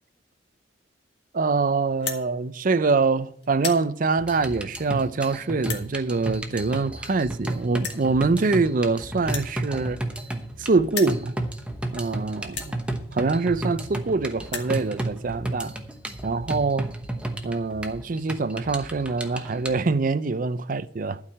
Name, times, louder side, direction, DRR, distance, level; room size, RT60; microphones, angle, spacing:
voice 1, 1.3-10.0 10.6-11.4 11.9-12.7 13.1-15.8 16.2-16.9 17.4-21.2, right 4 dB, 45° right, 0.5 m, -24 dB
sound 1, 1.9-2.2 2.9-3.1 3.4-3.8 4.6-4.7 5.6-5.9 6.9-7.0 7.2-7.3 7.8-8.1 9.2-10.6 10.8-11.2 11.9-12.0 12.5-12.7 13.7-13.8 14.0-14.1 14.3-14.7, left 7 dB, 70° left, 1.7 m, -34 dB
sound 2, 4.2-19.7, right 1 dB, 5° right, 1.0 m, -33 dB
12.0 x 4.8 x 8.6 m
head